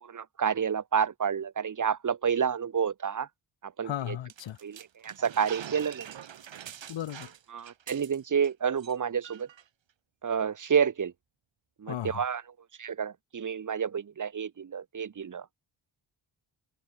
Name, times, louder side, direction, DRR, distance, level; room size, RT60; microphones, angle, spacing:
voice 1, 0.0-3.3 3.6-4.2 4.6-6.1 7.5-9.5 10.2-11.1 11.8-12.4 12.8-15.5, right 7 dB, 45° right, 1.7 m, -29 dB
voice 2, 3.8-4.6 6.9-7.3 11.9-12.2, left 11 dB, 85° left, 1.4 m, -35 dB
sound 1, 4.3-8.5 8.8-8.9 9.2-9.6, right 9 dB, 80° right, 6.9 m, -45 dB
wide cardioid pair, 170°, 44 cm